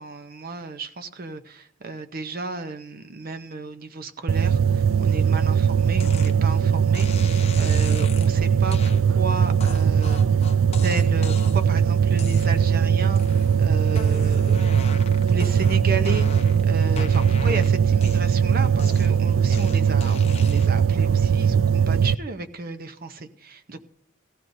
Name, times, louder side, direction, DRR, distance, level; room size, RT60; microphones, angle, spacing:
voice 1, 0.0-10.2 10.8-14.7 15.2-23.9, right 3 dB, 50° right, 9 dB, 0.7 m, -33 dB
sound 1, 4.3-22.1, right 7 dB, 70° right, 0.4 m, -20 dB
sound 2, 6.0-6.3 6.9-8.3 8.7-9.0 9.6-11.7 12.1-12.8 13.1-13.6 13.9-16.6 17.0-18.4 18.8-20.8, left 5 dB, 30° left, 0.8 m, -39 dB
17.0 x 14.0 x 2.7 m, 0.66 s
head